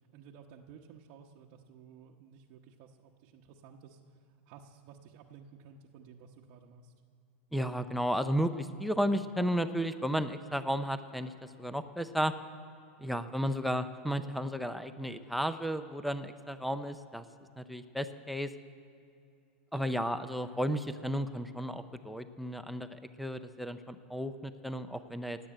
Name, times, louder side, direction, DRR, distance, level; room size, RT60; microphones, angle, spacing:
voice 1, 0.1-6.9 13.4-13.7 19.7-20.0, right 7 dB, 45° right, 0 dB, 0.9 m, -54 dB
voice 2, 7.5-12.3 13.0-17.2 17.6-18.5 19.7-25.4, equal, ahead, 11 dB, 0.5 m, -33 dB
17.5 x 8.0 x 8.8 m, 2.7 s
supercardioid pair, 150°, 7 cm